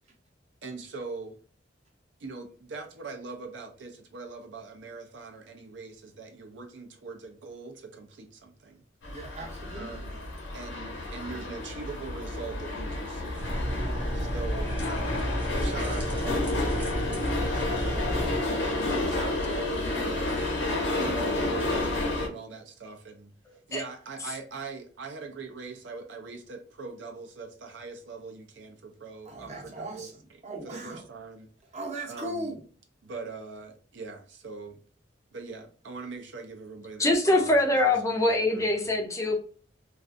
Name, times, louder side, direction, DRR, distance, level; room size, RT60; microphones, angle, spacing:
voice 1, 0.6-1.4 2.2-8.8 9.7-10.2 10.5-13.5 14.1-18.2 18.6-20.4 20.9-23.3 23.7-31.5 32.1-32.5 33.0-34.8 35.3-37.6 37.8-38.9, right 4 dB, 70° right, 0.5 m, -42 dB
sound 1, 9.0-22.3, left 2 dB, 85° left, 0.7 m, -31 dB
voice 2, 9.0-10.1 13.7-14.1 29.2-31.1 31.7-32.6, right 1 dB, 40° right, 0.7 m, -39 dB
sound 2, 13.3-18.3, equal, 5° right, 0.8 m, -31 dB
voice 3, 37.0-39.4, left 2 dB, 15° left, 0.4 m, -23 dB
2.4 x 2.4 x 2.4 m
head